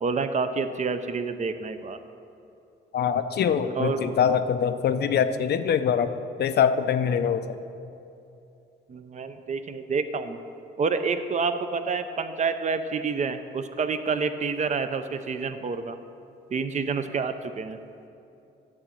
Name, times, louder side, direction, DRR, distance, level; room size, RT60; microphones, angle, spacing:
voice 1, 0.0-2.0 3.6-4.1 8.9-10.4 10.8-16.0 16.5-17.8, right 5 dB, 35° right, 9 dB, 0.6 m, -28 dB
voice 2, 2.9-6.1 6.4-7.5, left 7 dB, 55° left, 11 dB, 0.5 m, -23 dB
11.0 x 3.8 x 7.4 m, 2.7 s
cardioid pair, 90°, 20 cm